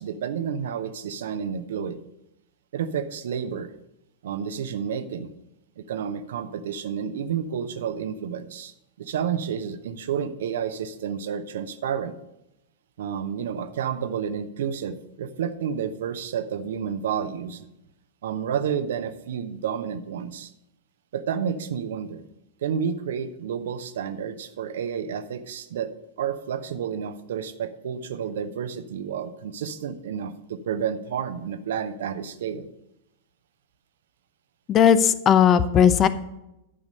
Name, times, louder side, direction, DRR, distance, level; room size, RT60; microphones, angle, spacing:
voice 1, 0.0-2.0 2.7-3.7 4.2-5.3 5.8-12.1 13.0-17.7 18.2-20.5 21.1-22.2 22.6-25.9 26.2-32.7, right 7 dB, 60° right, 11 dB, 0.8 m, -30 dB
voice 2, 34.7-36.1, left 8 dB, 30° left, 14 dB, 0.6 m, -17 dB
11.0 x 5.1 x 6.4 m, 0.88 s
figure-of-eight pair, 95°, 0 cm